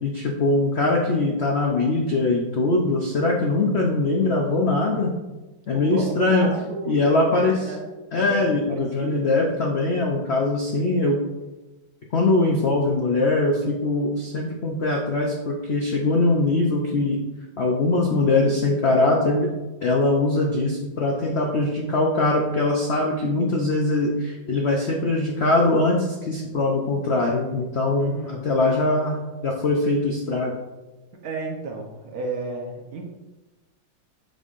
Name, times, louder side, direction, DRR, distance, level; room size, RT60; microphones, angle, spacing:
voice 1, 0.0-5.1 5.7-6.5 6.8-7.7 8.1-11.2 12.1-17.2 17.6-19.5 19.8-30.6, left 2 dB, 65° left, -1 dB, 0.6 m, -22 dB
voice 2, 5.7-7.9 8.1-9.2 28.0-28.4 31.2-33.0, right 3 dB, 60° right, 1 dB, 1.2 m, -33 dB
7.3 x 5.5 x 2.5 m, 1.1 s
omnidirectional pair, 2.0 m